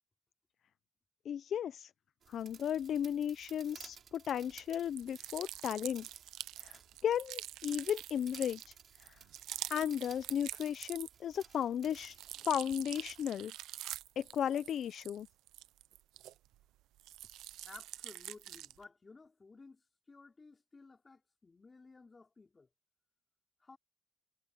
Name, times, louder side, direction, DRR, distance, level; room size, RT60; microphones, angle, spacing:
voice 1, 1.3-1.9 2.3-6.1 6.6-8.7 9.0-9.2 9.7-12.2 12.4-13.5 14.2-15.3, left 9 dB, 65° left, 0.5 m, -35 dB
sound 1, 2.2-13.3, right 7 dB, 55° right, 4.4 m, -57 dB
sound 2, 4.9-11.4 11.7-16.6 17.0-18.8, right 14 dB, 90° right, 0.5 m, -46 dB
voice 2, 17.6-22.7 23.6-23.8, left 3 dB, 30° left, 5.0 m, -56 dB
cardioid pair, 90°, 0 cm